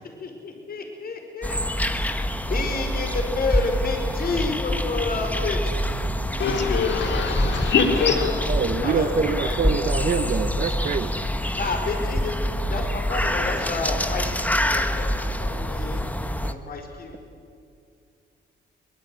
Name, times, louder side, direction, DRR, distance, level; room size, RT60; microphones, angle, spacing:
voice 1, 0.2-1.6 1.8-5.8 7.9-9.6 11.5-17.2, left 3 dB, 50° left, 3 dB, 5.4 m, -30 dB
sound 1, 1.4-16.5, equal, 10° left, 1.5 m, -26 dB
voice 2, 6.4-8.3, left 5 dB, 70° left, 4 dB, 3.6 m, -22 dB
voice 3, 8.5-11.1, right 5 dB, 45° right, 9 dB, 1.1 m, -25 dB
23.5 x 21.5 x 9.5 m, 2.4 s
cardioid pair, 85°, 20 cm